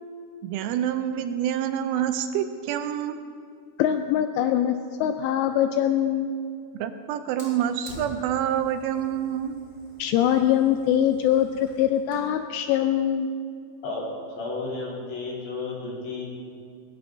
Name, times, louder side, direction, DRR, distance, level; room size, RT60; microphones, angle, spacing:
voice 1, 0.4-3.2 6.8-9.6, right 10 dB, 80° right, 8 dB, 3.0 m, -27 dB
voice 2, 3.8-4.7 5.0-6.3 10.0-13.3, left 10 dB, 80° left, 7 dB, 2.9 m, -23 dB
Fire, 7.4-12.3, left 1 dB, 15° left, 4.0 m, -48 dB
voice 3, 14.4-16.2, left 3 dB, 65° left, -5 dB, 6.9 m, -32 dB
22.5 x 20.0 x 2.7 m, 2.3 s
omnidirectional pair, 5.8 m